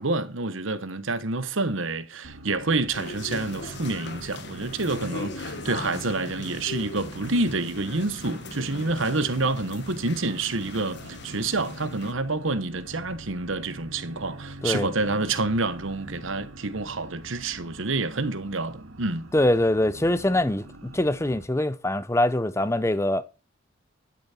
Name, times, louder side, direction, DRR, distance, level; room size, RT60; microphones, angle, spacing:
voice 1, 0.0-19.3, right 3 dB, 70° right, 1.1 m, -28 dB
sound 1, 2.2-21.4, right 1 dB, 85° right, 1.8 m, -45 dB
sound 2, 2.9-12.1, left 3 dB, 55° left, 1.5 m, -39 dB
voice 2, 19.3-20.7 20.9-23.2, left 1 dB, 15° left, 0.6 m, -23 dB
12.0 x 7.0 x 4.3 m
head